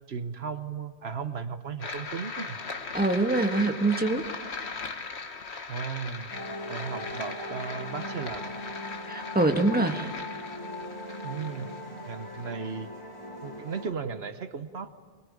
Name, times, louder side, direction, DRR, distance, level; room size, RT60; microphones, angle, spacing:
voice 1, 0.0-2.6 5.7-6.3 6.7-8.5 11.2-11.8 12.1-12.9 13.4-14.9, right 6 dB, 70° right, 10 dB, 1.2 m, -35 dB
sound 1, 1.8-12.7, left 4 dB, 80° left, 1.7 m, -39 dB
voice 2, 2.9-4.2 9.1-10.1, right 2 dB, 10° right, 4 dB, 1.5 m, -24 dB
sound 2, 6.3-13.9, left 1 dB, 25° left, 3.1 m, -40 dB
24.5 x 22.0 x 8.6 m, 1.5 s
omnidirectional pair, 1.1 m